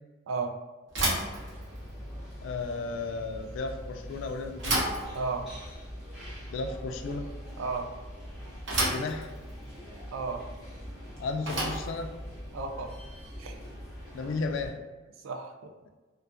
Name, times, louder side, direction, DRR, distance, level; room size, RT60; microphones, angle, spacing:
Bicycle / Thump thud, 0.9-14.0, right 1 dB, 60° right, 0.9 m, -35 dB
sound 1, 1.2-14.7, equal, ahead, 0.8 m, -43 dB
voice 1, 2.4-4.8 6.5-7.3 8.9-9.3 11.2-12.1 14.1-14.7, left 3 dB, 70° left, 5 dB, 0.3 m, -34 dB
voice 2, 5.1-5.5 7.6-7.9 10.1-10.4 12.5-12.9 13.4-13.5 15.2-15.7, right 4 dB, 80° right, 4 dB, 0.4 m, -33 dB
2.6 x 2.2 x 2.5 m, 1.3 s
head